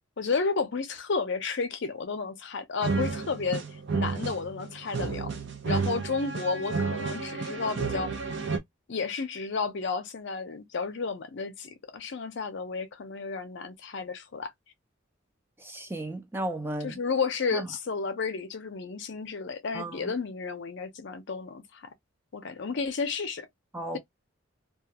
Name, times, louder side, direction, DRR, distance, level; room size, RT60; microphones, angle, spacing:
voice 1, 0.2-3.6 3.9-5.3 5.7-8.1 8.9-14.5 16.8-21.8 22.3-23.5, left 4 dB, 60° left, 0.5 m, -32 dB
sound 1, 2.8-8.6, right 4 dB, 60° right, 0.6 m, -31 dB
voice 2, 15.6-17.0 17.5-17.7 19.7-20.1 23.7-24.0, right 1 dB, 10° right, 0.4 m, -34 dB
2.3 x 2.3 x 2.8 m
head